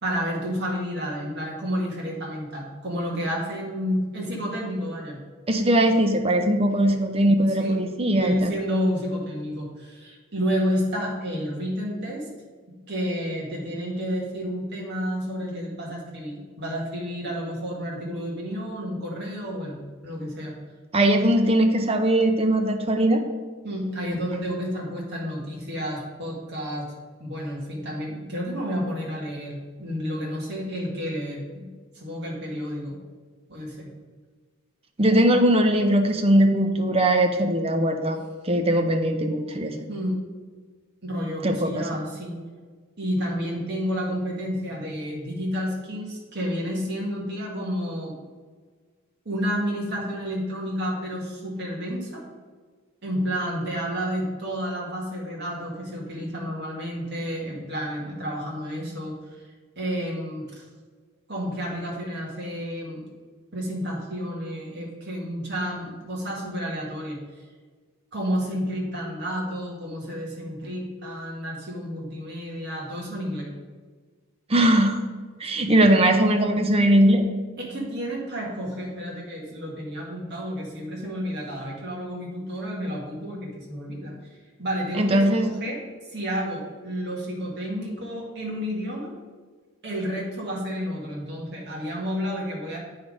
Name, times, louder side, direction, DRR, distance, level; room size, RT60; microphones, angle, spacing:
voice 1, 0.0-5.2 6.8-7.1 7.6-7.8 8.1-12.3 12.9-20.5 23.6-26.8 27.2-31.6 31.9-33.0 33.5-33.9 39.9-40.2 41.0-42.4 43.0-48.1 49.3-52.2 53.0-59.4 59.8-60.6 61.3-63.0 63.5-67.2 68.1-73.5 77.6-84.1 84.6-85.8 86.1-89.1 89.8-92.8, equal, 50° right, -3 dB, 2.0 m, -30 dB
voice 2, 5.5-8.5 20.9-23.2 35.0-38.2 38.4-39.7 41.4-41.9 74.5-75.0 75.4-77.2 85.0-85.5, right 1 dB, 25° right, 5 dB, 0.6 m, -20 dB
8.6 x 3.9 x 5.0 m, 1.5 s
head